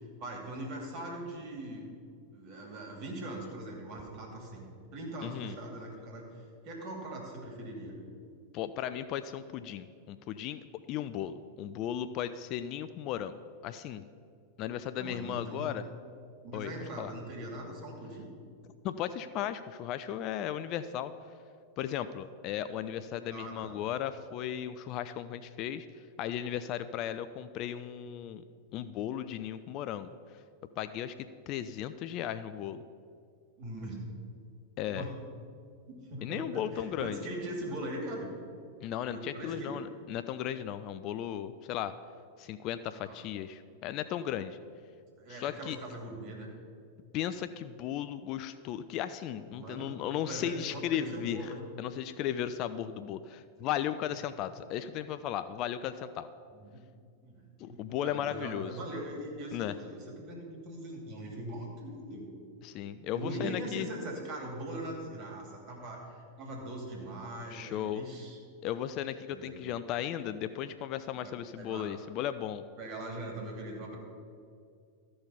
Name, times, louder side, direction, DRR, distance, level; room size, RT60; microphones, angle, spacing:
voice 1, 0.2-1.9 2.3-4.6 4.9-8.0 14.9-15.7 16.4-18.3 23.3-23.8 33.6-34.0 34.9-35.2 35.9-38.3 39.1-39.8 42.9-43.2 45.2-46.5 49.5-51.6 56.5-56.9 57.2-62.3 63.1-68.4 69.3-69.6 71.2-71.9 72.8-74.0, right 1 dB, 40° right, 0 dB, 2.5 m, -41 dB
voice 2, 5.2-5.6 8.5-10.6 10.9-13.4 13.6-14.0 14.6-15.8 16.5-16.7 17.0-17.1 18.8-21.1 21.8-25.9 26.2-28.4 28.7-30.1 30.8-32.8 34.8-35.1 36.2-37.2 38.8-41.9 42.4-44.6 45.3-45.8 47.1-51.5 51.8-56.3 57.6-58.7 59.5-59.7 62.6-63.9 67.5-68.0 68.6-72.6, left 10 dB, 40° left, 12 dB, 0.3 m, -36 dB
13.5 x 5.5 x 5.6 m, 2.3 s
figure-of-eight pair, 90°, 0 cm